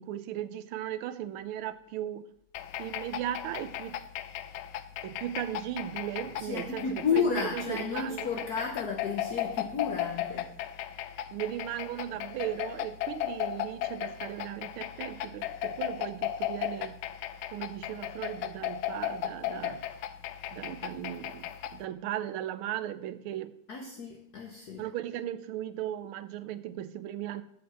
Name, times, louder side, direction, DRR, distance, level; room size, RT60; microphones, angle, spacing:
voice 1, 0.0-2.3 2.8-4.0 5.0-8.3 11.3-17.0 17.5-19.8 20.5-23.5 24.8-27.4, right 11 dB, 90° right, 14 dB, 1.6 m, -37 dB
sound 1, 2.5-21.8, left 11 dB, 85° left, 1.5 m, -36 dB
voice 2, 6.4-10.5 23.7-24.8, left 6 dB, 55° left, 2 dB, 1.4 m, -32 dB
13.0 x 5.3 x 7.7 m, 0.74 s
omnidirectional pair, 2.3 m